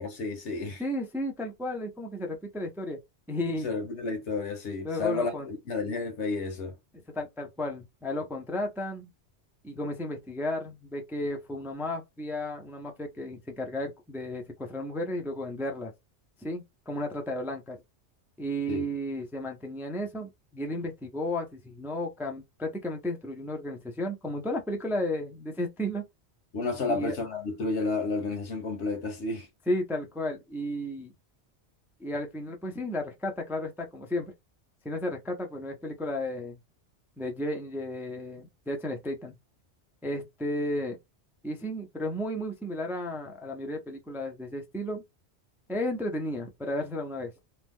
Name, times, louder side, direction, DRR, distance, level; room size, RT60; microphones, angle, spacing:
voice 1, 0.0-0.8 3.6-6.7 18.7-18.8 26.5-29.5, left 3 dB, 90° left, 1.2 m, -31 dB
voice 2, 0.8-3.0 3.3-3.7 4.8-5.5 7.1-9.1 9.6-15.9 16.4-17.8 18.4-26.0 26.9-27.2 29.7-31.1 32.0-34.3 34.8-36.6 37.2-39.4 40.0-41.0 41.4-45.0 45.7-47.3, left 1 dB, 5° right, 0.4 m, -33 dB
2.9 x 2.1 x 3.4 m
omnidirectional pair, 1.2 m